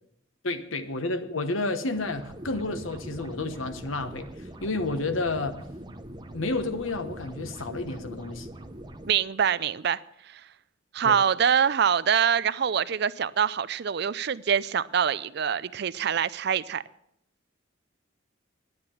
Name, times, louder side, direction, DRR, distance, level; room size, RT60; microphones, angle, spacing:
voice 1, 0.4-4.3 4.6-5.6 6.3-8.5 11.0-11.2, left 2 dB, 90° left, 9 dB, 1.1 m, -30 dB
sound 1, 1.9-9.1, right 1 dB, 20° right, 0.8 m, -42 dB
voice 2, 9.1-10.0 10.3-10.4 10.9-16.8, right 7 dB, 55° right, 17 dB, 0.4 m, -25 dB
11.0 x 9.6 x 7.1 m, 0.75 s
head